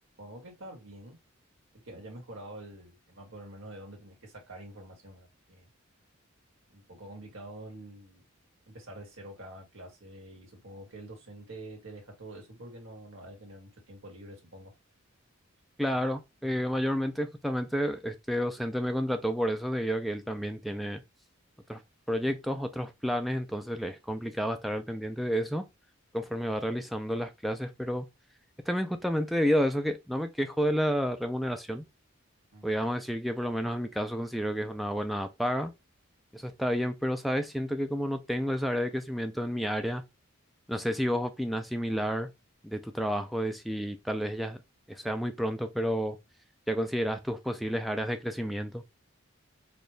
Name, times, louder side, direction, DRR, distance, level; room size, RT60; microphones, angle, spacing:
voice 1, 0.2-1.2 1.7-5.7 6.7-8.2 8.7-14.7 32.5-32.8, right 1 dB, 65° right, 1.5 m, -46 dB
voice 2, 15.8-21.0 21.7-21.8 22.1-25.6 26.1-28.1 28.7-31.8 32.6-35.7 36.3-40.0 40.7-42.3 42.6-44.6 44.9-46.2 46.7-48.8, equal, ahead, 0.4 m, -30 dB
4.3 x 2.4 x 3.3 m
head